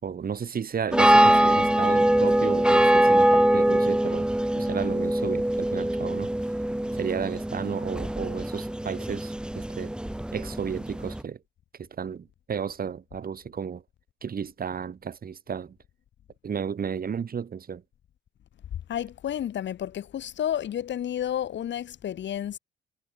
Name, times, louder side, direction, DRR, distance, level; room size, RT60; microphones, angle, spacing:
voice 1, 0.0-4.3 4.6-6.3 6.9-9.9 10.3-11.4 11.8-13.8 14.2-15.7 16.4-17.8, right 7 dB, 45° right, 5.1 m, -33 dB
sound 1, 0.9-11.2, right 1 dB, 5° right, 0.9 m, -23 dB
voice 2, 18.9-22.6, left 10 dB, 65° left, 3.7 m, -31 dB
cardioid pair, 90°, 20 cm